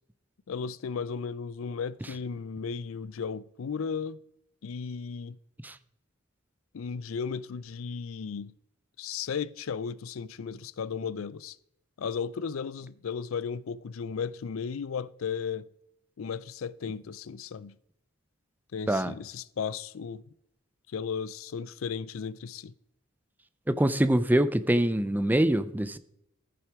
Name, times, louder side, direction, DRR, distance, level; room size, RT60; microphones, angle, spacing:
voice 1, 0.5-4.2 4.6-5.4 6.7-8.5 9.0-11.6 12.0-15.7 16.2-17.8 18.7-20.2 20.9-22.7, left 6 dB, 80° left, 0.4 m, -35 dB
voice 2, 23.7-26.0, right 1 dB, 10° right, 0.5 m, -24 dB
14.0 x 6.0 x 4.7 m
head